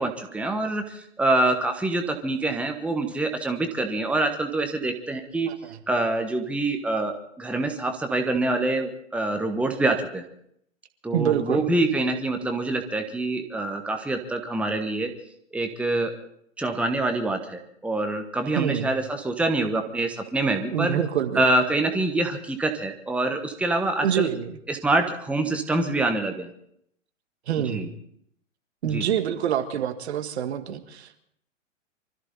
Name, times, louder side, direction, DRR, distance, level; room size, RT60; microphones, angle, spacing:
voice 1, 0.0-5.5 5.9-10.2 11.0-15.1 15.5-16.1 16.6-21.0 21.3-24.3 24.7-26.5 27.6-27.9 28.8-29.0, right 2 dB, 5° right, 5 dB, 1.2 m, -25 dB
voice 2, 5.5-5.8 11.1-11.7 18.6-18.9 20.7-21.4 24.0-24.5 27.5-27.9 28.8-31.2, right 9 dB, 55° right, 8 dB, 1.7 m, -26 dB
24.5 x 14.0 x 4.1 m, 0.71 s
figure-of-eight pair, 115°, 38 cm